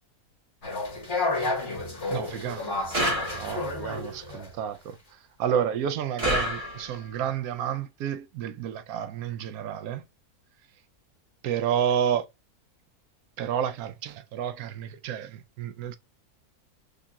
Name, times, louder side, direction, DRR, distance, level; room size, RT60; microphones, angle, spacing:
sound 1, 0.6-4.5, left 2 dB, 45° left, 1.9 m, -31 dB
voice 1, 2.1-2.8 3.3-10.0 11.4-12.3 13.4-16.0, right 9 dB, 75° right, 1.0 m, -30 dB
sound 2, 2.9-3.8 6.2-7.1, equal, 25° right, 1.3 m, -29 dB
6.5 x 2.7 x 2.4 m
omnidirectional pair, 1.6 m